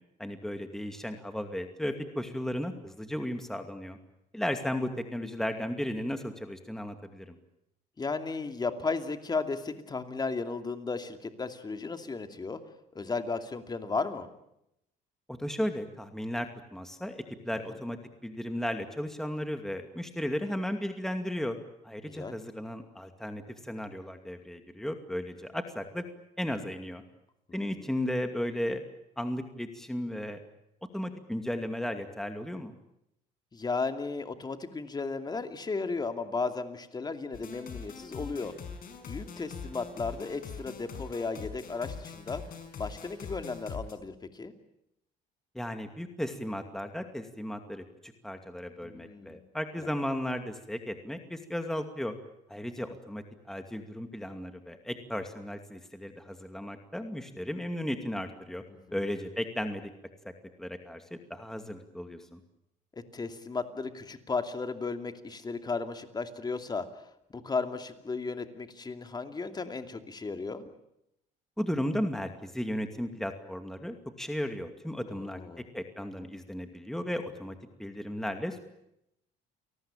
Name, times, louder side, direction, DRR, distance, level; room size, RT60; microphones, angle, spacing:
voice 1, 0.2-4.0 4.3-7.4 15.3-21.6 21.8-26.0 26.4-27.0 27.5-28.8 29.2-30.4 30.9-32.8 45.5-52.1 52.5-58.6 58.9-59.9 60.2-60.3 60.6-62.4 71.6-75.4 75.7-77.5 77.8-78.6, left 1 dB, ahead, 6 dB, 2.4 m, -35 dB
voice 2, 8.0-12.6 12.9-14.3 22.1-22.4 27.6-27.9 33.5-38.5 39.1-42.4 42.8-44.5 48.8-49.4 49.8-49.9 58.7-58.8 62.9-66.9 67.3-70.6 75.1-75.7, left 4 dB, 25° left, 7 dB, 2.7 m, -35 dB
sound 1, 37.3-43.9, left 6 dB, 60° left, 5.5 m, -43 dB
29.5 x 19.0 x 9.0 m, 0.81 s
cardioid pair, 110°, 17 cm